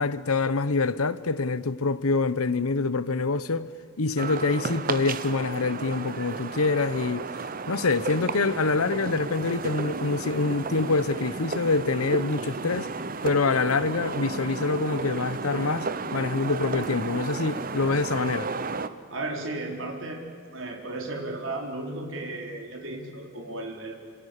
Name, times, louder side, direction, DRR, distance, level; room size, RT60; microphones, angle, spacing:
voice 1, 0.0-3.7 4.0-7.3 7.7-12.9 13.2-18.5, left 3 dB, 85° left, 1.0 m, -26 dB
sound 1, 4.2-18.9, right 4 dB, 40° right, 1.0 m, -33 dB
voice 2, 19.1-20.2 20.5-24.0, right 2 dB, 60° right, 4.4 m, -34 dB
27.0 x 27.0 x 6.8 m
head